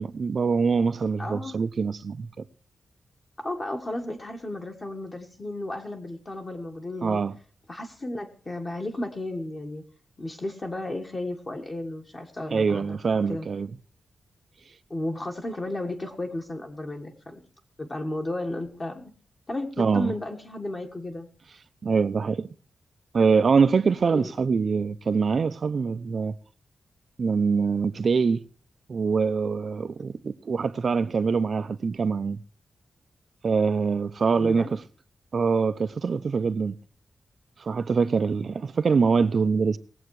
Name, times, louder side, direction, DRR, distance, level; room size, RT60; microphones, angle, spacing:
voice 1, 0.0-2.3 7.0-7.3 12.5-13.7 19.8-20.1 21.8-22.5 23.1-26.4 27.2-28.4 28.9-32.4 33.4-34.8 35.3-36.8 37.6-39.8, right 5 dB, 50° right, 0.6 m, -24 dB
voice 2, 1.2-1.6 3.4-7.2 7.7-9.8 10.2-13.0 13.3-13.5 14.9-17.4 17.8-19.1 19.5-21.3 24.1-24.3 34.3-34.7, left 1 dB, 30° left, 1.5 m, -33 dB
19.5 x 7.9 x 4.8 m
wide cardioid pair, 145°, 0 cm